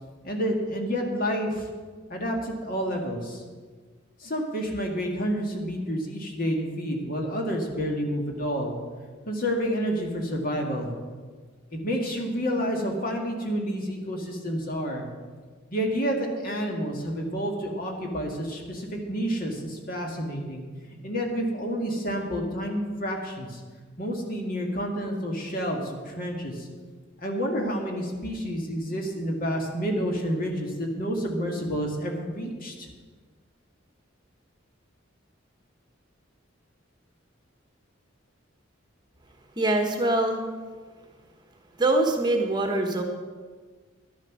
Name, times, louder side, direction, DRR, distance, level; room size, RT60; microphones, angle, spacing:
voice 1, 0.2-1.7 2.1-3.4 4.2-8.8 9.3-10.9 11.7-15.0 15.7-20.6 20.9-23.6 24.0-26.7 27.2-32.9, equal, 45° left, 1 dB, 2.1 m, -29 dB
voice 2, 39.6-40.4 41.8-43.0, right 2 dB, 20° right, 3 dB, 1.2 m, -23 dB
11.5 x 10.5 x 6.2 m, 1.5 s
head